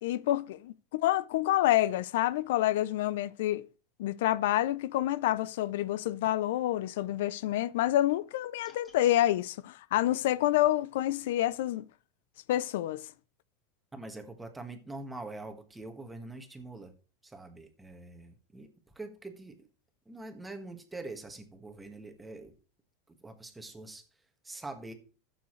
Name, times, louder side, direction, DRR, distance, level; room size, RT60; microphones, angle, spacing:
voice 1, 0.0-3.7 4.0-11.9 12.5-13.1, left 14 dB, 75° left, 0.4 m, -28 dB
sound 1, 8.6-9.2, left 3 dB, 20° left, 2.1 m, -60 dB
voice 2, 13.9-16.9 17.2-18.7 18.9-19.7 20.0-22.5 23.1-24.0 24.4-24.9, right 2 dB, 10° right, 1.5 m, -44 dB
14.0 x 7.1 x 3.1 m
supercardioid pair, 140°, 0 cm